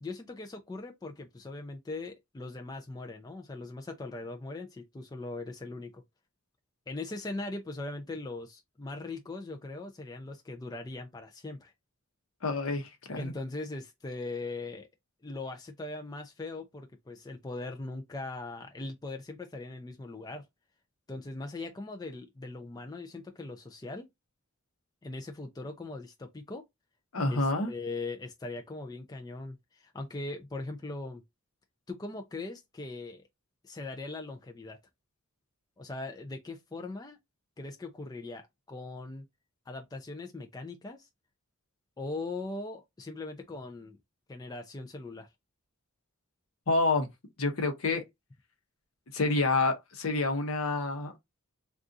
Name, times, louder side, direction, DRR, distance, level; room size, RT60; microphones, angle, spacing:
voice 1, 0.0-6.0 6.9-11.7 13.1-14.9 15.2-20.4 21.1-24.1 25.0-26.6 27.3-31.2 31.9-33.3 33.6-34.8 35.8-37.2 37.6-39.2 39.7-41.1 42.0-44.0 44.3-45.3, left 2 dB, 15° left, 0.3 m, -40 dB
voice 2, 12.4-13.3 27.1-27.7 46.7-47.1 47.4-48.0 49.1-51.1, left 3 dB, 75° left, 0.8 m, -28 dB
2.6 x 2.4 x 3.6 m
head